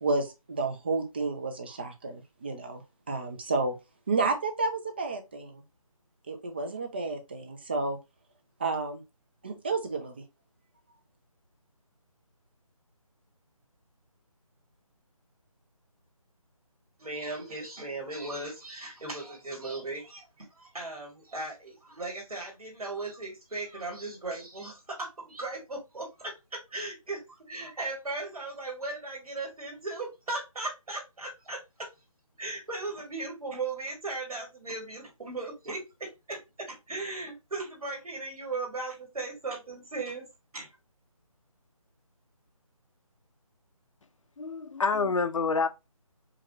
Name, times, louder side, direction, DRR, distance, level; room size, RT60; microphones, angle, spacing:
voice 1, 0.0-2.8 3.1-3.7 4.1-5.6 6.3-8.0 8.6-9.0 9.4-10.2, right 3 dB, 15° right, 0.5 m, -31 dB
voice 2, 17.0-31.9 32.4-40.3 40.5-40.7, right 3 dB, 80° right, 2.3 m, -37 dB
voice 3, 44.4-45.7, left 4 dB, 60° left, 0.7 m, -27 dB
4.9 x 2.9 x 2.9 m
figure-of-eight pair, 165°, 19 cm